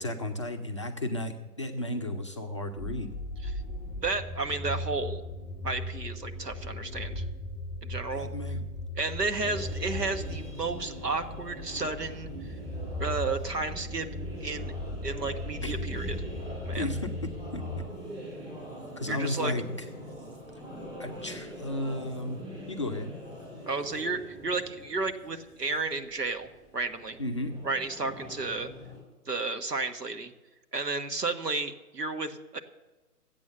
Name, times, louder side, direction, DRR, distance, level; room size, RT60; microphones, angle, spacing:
voice 1, 0.0-3.1 8.1-8.6 15.6-15.7 16.7-17.8 19.0-19.6 21.0-22.4 22.7-23.1 27.2-27.5, left 1 dB, 20° left, 3 dB, 0.5 m, -34 dB
sound 1, 2.8-17.9, left 1 dB, 5° left, 0.8 m, -37 dB
voice 2, 4.0-5.2 5.6-7.2 7.8-8.3 8.9-12.5 13.0-14.1 14.4-14.7 15.0-16.1 16.6-16.9 19.1-19.5 23.7-26.5 26.7-27.2 27.6-28.7 29.3-30.3 30.7-32.6, right 3 dB, 90° right, 8 dB, 1.4 m, -32 dB
sound 2, 9.3-29.0, equal, 15° right, 5.7 m, -44 dB
sound 3, 13.7-26.0, equal, 60° right, 2.7 m, -52 dB
14.0 x 8.4 x 6.8 m, 1.2 s
figure-of-eight pair, 135°, 46 cm